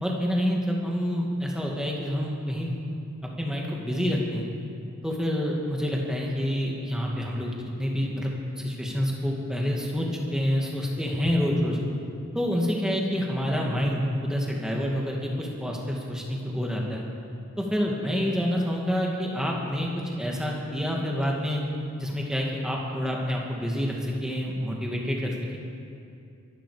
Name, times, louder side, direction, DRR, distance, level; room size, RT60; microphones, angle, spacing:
voice 1, 0.0-2.7 3.4-4.4 5.0-11.8 12.3-17.0 17.6-21.6 22.0-25.6, equal, 5° right, -2 dB, 2.0 m, -28 dB
23.5 x 11.5 x 5.0 m, 2.6 s
head